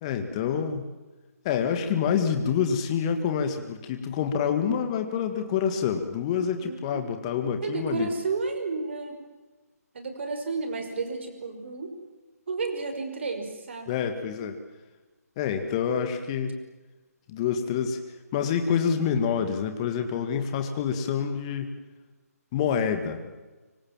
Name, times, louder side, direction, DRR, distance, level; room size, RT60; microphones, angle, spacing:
voice 1, 0.0-0.8 1.4-8.1 13.9-14.6 15.4-16.6 17.3-18.0 18.3-21.7 22.5-23.2, left 7 dB, 20° left, 7 dB, 2.0 m, -27 dB
voice 2, 6.6-7.0 7.6-9.2 9.9-11.9 12.5-13.9, right 4 dB, 45° right, 6 dB, 5.9 m, -32 dB
25.5 x 25.5 x 7.5 m, 1.2 s
figure-of-eight pair, 145°, 9 cm